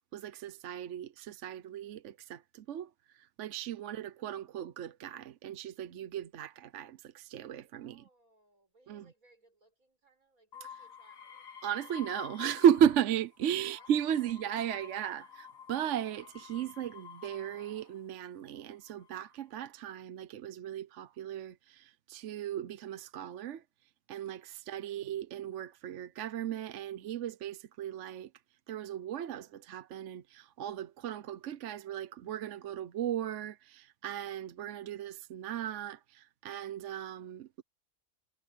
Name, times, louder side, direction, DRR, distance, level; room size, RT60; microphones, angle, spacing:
voice 1, 0.1-8.0 8.9-9.1 11.6-23.6 24.1-28.3 28.7-37.6, right 9 dB, 65° right, 1.0 m, -35 dB
voice 2, 7.7-11.5 13.4-14.4 24.9-25.2 36.9-37.6, right 3 dB, 90° right, 6.5 m, -66 dB
sound 1, 10.5-13.1 13.4-18.0 18.7-19.3, left 7 dB, 75° left, 2.0 m, -50 dB
omnidirectional pair, 1.4 m